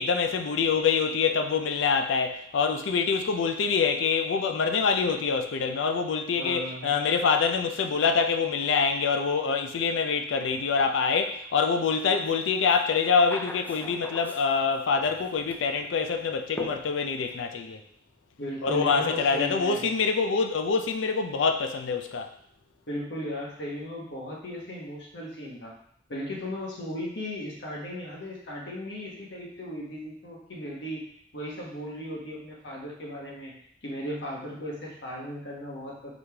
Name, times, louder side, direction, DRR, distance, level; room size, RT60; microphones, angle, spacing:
voice 1, 0.0-17.8 18.6-22.3, left 5 dB, 85° left, 5 dB, 0.4 m, -25 dB
voice 2, 6.4-6.9 18.4-19.9 22.9-25.7 26.1-31.0 31.3-33.5 33.8-36.1, left 1 dB, 65° left, -3 dB, 1.2 m, -36 dB
sound 1, 12.3-12.4 12.7-14.8 15.1-15.7 16.6-17.3, left 1 dB, 10° left, 0.4 m, -41 dB
4.0 x 3.2 x 3.4 m, 0.66 s
head